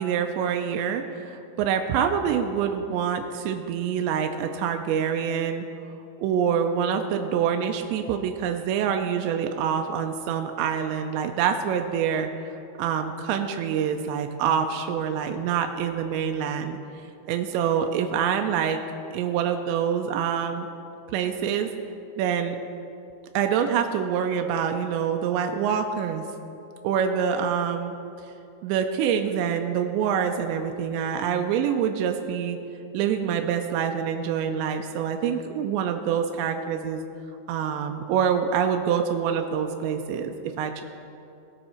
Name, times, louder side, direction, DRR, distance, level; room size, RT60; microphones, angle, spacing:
voice 1, 0.0-5.7 6.2-12.3 12.8-16.8 17.3-18.8 19.1-20.7 21.1-21.7 22.2-22.6 23.3-26.3 26.8-27.9 28.6-32.6 32.9-37.0 37.5-40.8, right 8 dB, 80° right, 5 dB, 2.8 m, -26 dB
18.5 x 6.5 x 4.4 m, 2.7 s
omnidirectional pair, 5.2 m